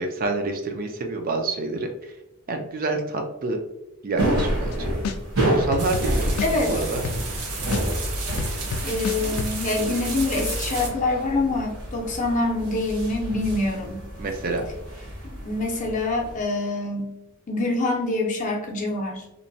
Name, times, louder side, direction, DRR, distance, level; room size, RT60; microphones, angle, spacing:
voice 1, 0.0-2.1 2.5-3.6 4.0-4.9 5.4-7.0 14.2-14.7, right 3 dB, 40° right, 4 dB, 0.3 m, -28 dB
sound 1, 4.2-16.4, right 1 dB, 65° right, 1.0 m, -30 dB
sound 2, 4.4-4.7 5.0-7.4 7.7-9.5, left 5 dB, 85° left, 0.3 m, -29 dB
sound 3, 5.8-10.9, right 2 dB, 80° right, 0.7 m, -31 dB
voice 2, 6.4-6.9 8.8-14.0 15.2-17.1 17.5-19.2, left 2 dB, 35° left, 0 dB, 0.5 m, -25 dB
2.9 x 2.1 x 2.6 m, 0.88 s
head